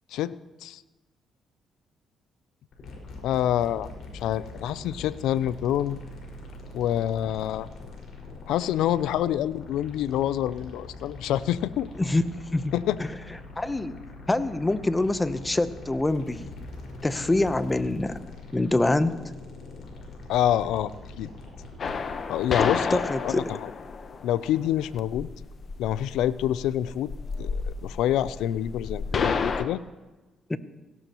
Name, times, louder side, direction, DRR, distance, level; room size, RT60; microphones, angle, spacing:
sound 1, 2.7-22.1, left 2 dB, 65° left, 5.3 m, -43 dB
voice 1, 3.2-3.9 4.1-6.0 6.7-7.7 8.5-11.9 12.7-13.0 20.3-21.3 22.3-23.6 24.2-25.3 25.8-27.1 27.4-29.8, left 11 dB, 90° left, 16 dB, 0.4 m, -27 dB
voice 2, 13.6-14.0 14.3-16.5 17.0-18.2 18.5-19.2 22.9-23.5 30.5-30.6, left 2 dB, 15° left, 12 dB, 0.8 m, -25 dB
sound 2, 21.8-29.6, left 5 dB, 50° left, 1.0 m, -31 dB
17.5 x 17.0 x 3.0 m, 1.1 s
cardioid pair, 90°, 0 cm